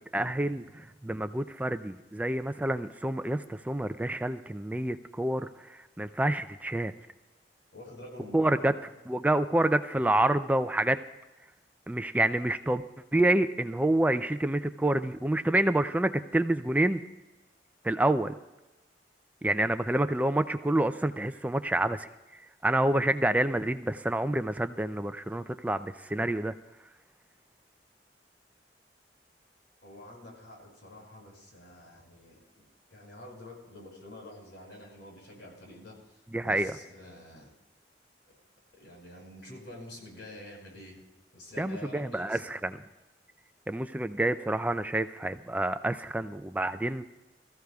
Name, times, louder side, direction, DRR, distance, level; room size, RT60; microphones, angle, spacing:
voice 1, 0.1-6.9 8.3-8.7 9.1-11.0 11.9-12.8 13.1-17.0 17.8-18.3 19.4-22.1 22.6-26.5 36.3-36.7 41.6-42.8 43.7-47.0, right 1 dB, 10° right, 10 dB, 0.4 m, -28 dB
voice 2, 7.7-8.9 29.8-32.6 32.9-37.5 38.7-41.0 41.3-42.4, left 1 dB, 85° left, -2 dB, 5.6 m, -47 dB
22.5 x 14.5 x 2.3 m, 1.0 s
head